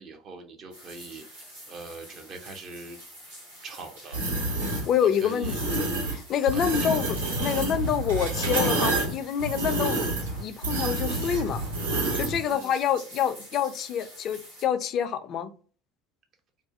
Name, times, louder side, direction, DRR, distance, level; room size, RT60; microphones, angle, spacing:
voice 1, 0.0-3.0 3.6-4.2 4.7-5.6 6.5-7.1 12.4-12.7, right 3 dB, 40° right, 0.5 m, -42 dB
sound 1, 0.7-14.6, equal, 65° right, 0.9 m, -47 dB
sound 2, 4.1-4.8 5.4-6.2 6.5-12.4, right 2 dB, 85° right, 1.3 m, -28 dB
voice 2, 4.6-10.1 10.4-11.6 12.1-15.5, left 8 dB, 45° left, 0.3 m, -27 dB
2.4 x 2.2 x 2.4 m
figure-of-eight pair, 65°, 0 cm